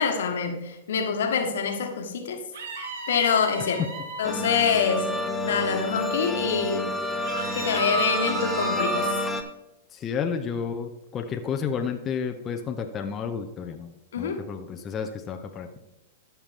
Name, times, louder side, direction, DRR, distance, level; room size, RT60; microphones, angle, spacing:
voice 1, 0.0-2.4 3.1-3.8 4.2-5.1 5.4-6.9 7.5-9.1 14.1-14.4, left 6 dB, 75° left, 5 dB, 1.4 m, -25 dB
sound 1, 2.5-4.3 7.2-9.3, right 3 dB, 75° right, 1.8 m, -32 dB
sound 2, 4.2-9.4, left 2 dB, 10° left, 1.0 m, -30 dB
voice 2, 9.9-15.7, left 6 dB, 25° left, 4 dB, 0.7 m, -31 dB
13.0 x 5.9 x 3.5 m, 0.94 s
hypercardioid pair, 115°, 0 cm